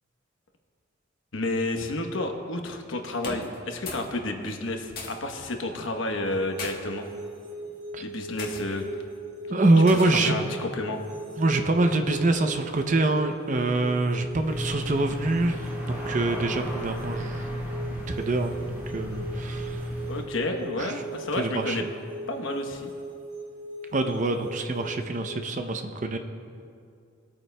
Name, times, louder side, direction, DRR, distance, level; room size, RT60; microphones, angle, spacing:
voice 1, 1.3-7.1 8.0-8.8 10.0-11.0 20.1-21.8 22.3-22.9, left 2 dB, 80° left, 4 dB, 1.0 m, -31 dB
sound 1, 3.2-4.1 4.4-5.4 6.3-6.8 7.5-7.8 8.4-8.6 9.9-10.3, left 3 dB, 50° left, 1.7 m, -39 dB
sound 2, 6.4-25.2, right 3 dB, 60° right, 1.8 m, -40 dB
voice 2, 9.5-10.3 11.4-17.5 17.9-19.8 20.8-20.9 21.4-21.8 23.9-26.2, right 2 dB, 40° right, 6 dB, 0.6 m, -25 dB
sound 3, 14.4-20.2, equal, 10° right, 2.3 m, -34 dB
20.5 x 8.9 x 2.2 m, 2.4 s
head